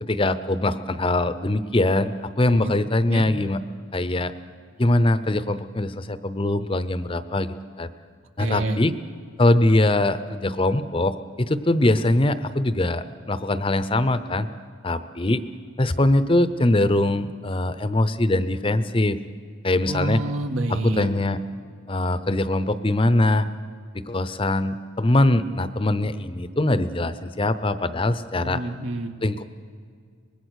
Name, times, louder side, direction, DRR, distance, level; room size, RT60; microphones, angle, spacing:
voice 1, 0.0-3.6 3.9-4.3 4.8-7.9 8.4-8.9 9.4-14.5 14.8-15.4 15.8-19.2 19.6-20.2 20.8-21.4 21.9-23.5 23.9-28.6 29.2-29.5, left 1 dB, 25° left, 13 dB, 0.7 m, -22 dB
voice 2, 8.4-8.8 19.9-21.1 28.4-29.1, right 2 dB, 75° right, 6 dB, 1.7 m, -28 dB
24.5 x 20.5 x 6.4 m, 2.1 s
head